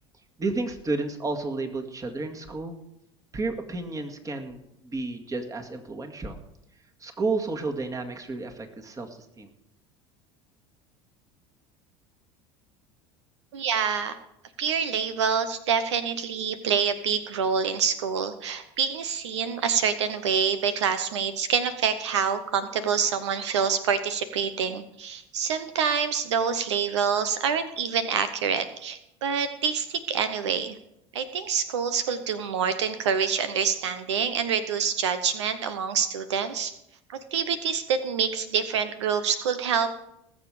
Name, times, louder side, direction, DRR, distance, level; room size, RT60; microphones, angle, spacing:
voice 1, 0.4-2.8 3.3-6.4 7.0-9.1 9.4-9.5, right 3 dB, 25° right, 4 dB, 2.0 m, -31 dB
voice 2, 13.5-14.1 14.6-30.8 31.1-36.7 37.3-39.9, right 7 dB, 90° right, 11 dB, 0.9 m, -26 dB
19.5 x 7.3 x 5.0 m, 0.81 s
hypercardioid pair, 90°, 14 cm